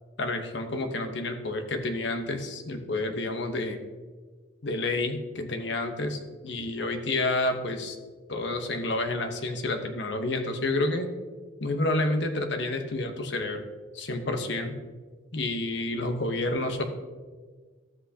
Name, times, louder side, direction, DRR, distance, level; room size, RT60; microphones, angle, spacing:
voice 1, 0.2-3.8 4.6-8.0 8.3-11.1 11.6-13.7 13.9-14.7 15.3-16.8, left 2 dB, 60° left, 7 dB, 0.9 m, -29 dB
12.0 x 8.1 x 2.8 m, 1.4 s
head